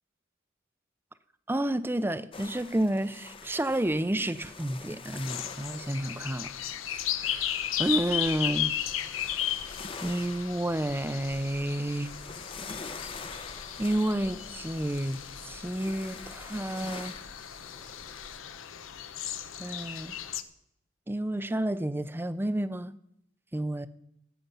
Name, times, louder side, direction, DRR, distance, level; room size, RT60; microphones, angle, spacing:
voice 1, 1.5-6.5 7.2-8.7 10.0-12.1 13.8-17.1 19.6-20.1 21.1-22.9 23.5-23.9, right 1 dB, 10° right, 0.6 m, -30 dB
sound 1, 2.3-18.4, left 4 dB, 25° left, 0.7 m, -46 dB
sound 2, 5.2-20.4, left 11 dB, 90° left, 0.8 m, -36 dB
17.0 x 8.6 x 5.5 m
head